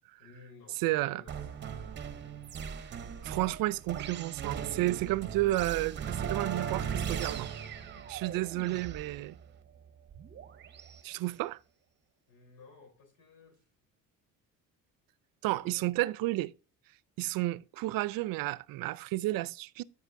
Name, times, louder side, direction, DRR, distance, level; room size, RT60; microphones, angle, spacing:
voice 1, 0.2-1.9 2.2-2.8 7.8-8.5 11.0-11.2 12.3-13.7 15.5-15.9, left 4 dB, 85° left, 3.6 m, -57 dB
voice 2, 0.8-1.2 3.2-7.5 8.1-9.4 11.0-11.6 15.4-16.5 17.2-19.8, right 18 dB, 85° right, 0.5 m, -31 dB
sound 1, 1.3-11.0, right 7 dB, 35° right, 0.7 m, -38 dB
12.5 x 5.4 x 2.6 m
cardioid pair, 150°, 33 cm